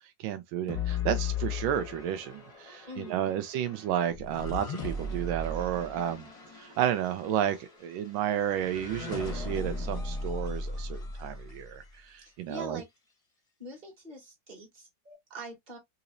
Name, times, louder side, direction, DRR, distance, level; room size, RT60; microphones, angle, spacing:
voice 1, 0.2-6.3 6.6-12.8, right 10 dB, 90° right, 1.4 m, -32 dB
sound 1, 0.7-12.0, left 3 dB, 35° left, 0.6 m, -37 dB
voice 2, 2.9-3.4 12.2-12.8 13.6-15.8, right 1 dB, 25° right, 1.5 m, -44 dB
4.0 x 2.9 x 2.5 m
omnidirectional pair, 2.1 m